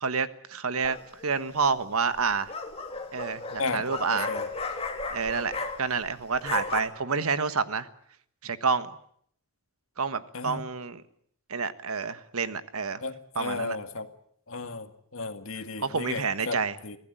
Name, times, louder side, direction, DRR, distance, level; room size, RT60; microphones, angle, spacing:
voice 1, 0.0-1.0 1.2-2.5 3.1-4.3 5.1-5.5 5.8-7.9 8.4-8.9 10.0-11.0 11.5-13.0 13.3-13.8 15.8-16.8, right 5 dB, 85° right, 12 dB, 1.4 m, -28 dB
sound 1, 0.8-1.3 2.2-6.1 6.3-6.8, left 3 dB, 25° left, 2.5 m, -35 dB
voice 2, 3.6-4.5 10.3-10.6 13.0-14.1 14.5-16.6 16.8-17.0, left 3 dB, 70° left, 8 dB, 2.1 m, -34 dB
24.5 x 17.0 x 9.1 m, 0.66 s
head